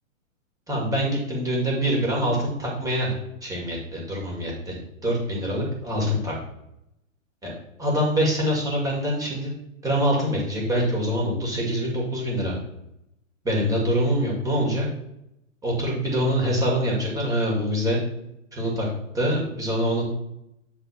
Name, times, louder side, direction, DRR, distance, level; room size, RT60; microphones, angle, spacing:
voice 1, 0.7-3.1 3.4-4.8 5.0-6.3 7.4-7.5 7.8-9.5 9.8-12.6 13.4-14.9 15.6-18.0 18.5-18.9 19.1-20.0, equal, 10° right, -3 dB, 1.9 m, -24 dB
8.2 x 3.7 x 4.1 m, 0.83 s
hypercardioid pair, 130°, 40 cm